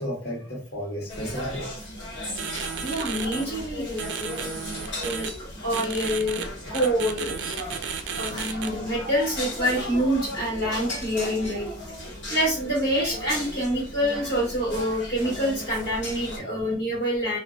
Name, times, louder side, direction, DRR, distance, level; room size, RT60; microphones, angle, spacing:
voice 1, 0.0-1.7 7.7-7.8 8.2-9.3 11.2-12.2 16.3-17.0, equal, 60° left, 1.1 m, -37 dB
sound 1, 1.1-16.4, left 1 dB, 80° left, 1.0 m, -36 dB
sound 2, 2.4-3.5 4.0-5.3 5.7-6.4 6.7-8.7, right 7 dB, 65° right, 0.3 m, -33 dB
voice 2, 2.8-4.5 5.0-7.5 8.1-11.7 12.3-17.4, equal, 30° left, 1.4 m, -27 dB
2.6 x 2.1 x 2.2 m
head